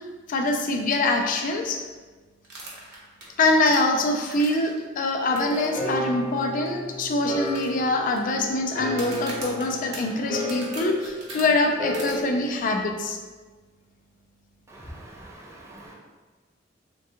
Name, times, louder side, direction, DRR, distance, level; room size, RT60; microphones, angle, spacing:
voice 1, 0.3-1.8 3.4-13.2, left 2 dB, 45° left, 3 dB, 0.3 m, -24 dB
sound 1, 2.4-4.8 5.4-5.8 6.0-6.1 6.7-6.8 7.4-8.2 8.9-11.4 11.9-12.1, right 2 dB, 60° right, 0.8 m, -40 dB
sound 2, 5.3-12.2, left 1 dB, 20° left, 0.8 m, -33 dB
voice 2, 14.7-15.9, right 1 dB, 15° right, -4 dB, 0.5 m, -44 dB
3.4 x 2.2 x 2.7 m, 1.3 s
head